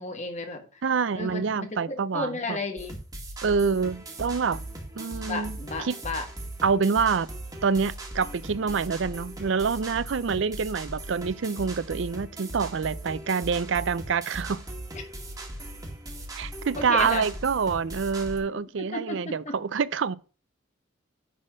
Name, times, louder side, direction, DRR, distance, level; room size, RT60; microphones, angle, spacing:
voice 1, 0.0-0.6 1.2-3.0 5.3-6.2 10.4-10.5 14.9-15.0 16.8-17.3 18.9-19.5, left 2 dB, 35° left, 1.4 m, -33 dB
voice 2, 0.8-2.6 3.4-4.6 5.0-5.9 6.6-7.3 7.6-14.6 16.4-20.2, right 5 dB, 70° right, 0.5 m, -26 dB
sound 1, 2.8-18.4, right 1 dB, 20° right, 2.0 m, -39 dB
10.0 x 4.3 x 6.2 m
head